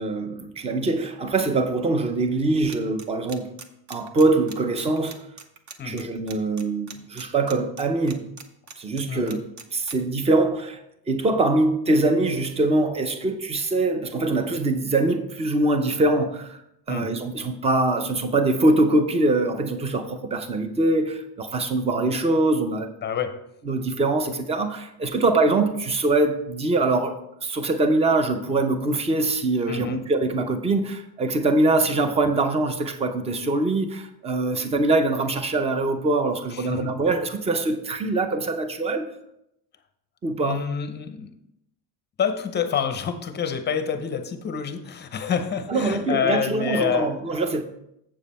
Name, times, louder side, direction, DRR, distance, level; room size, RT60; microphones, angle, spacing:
voice 1, 0.0-3.5 3.9-5.2 5.8-8.2 8.8-9.4 9.7-16.6 16.9-22.9 23.6-39.1 40.2-40.6 45.7-47.6, right 2 dB, 15° right, 0.5 m, -23 dB
sound 1, 2.7-9.9, right 5 dB, 40° right, 0.8 m, -41 dB
voice 2, 5.8-6.1 9.1-9.4 16.9-17.2 23.0-23.4 29.7-30.0 36.5-36.9 40.4-41.3 42.2-47.2, left 7 dB, 25° left, 0.6 m, -28 dB
7.6 x 7.2 x 4.2 m
cardioid pair, 165°, 43 cm